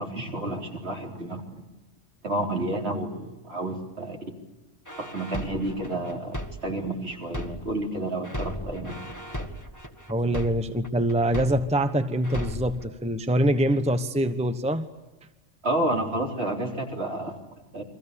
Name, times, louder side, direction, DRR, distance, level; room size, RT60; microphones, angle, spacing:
voice 1, 0.0-1.4 2.2-4.2 5.0-8.9 15.6-17.4 17.7-17.8, right 1 dB, 55° right, 1 dB, 4.4 m, -30 dB
sound 1, 4.9-7.9 8.2-11.9 12.2-12.8, equal, 15° left, 1.9 m, -36 dB
voice 2, 10.1-14.9, right 1 dB, 5° right, 9 dB, 1.1 m, -24 dB
30.0 x 23.5 x 7.0 m, 1.1 s
omnidirectional pair, 1.2 m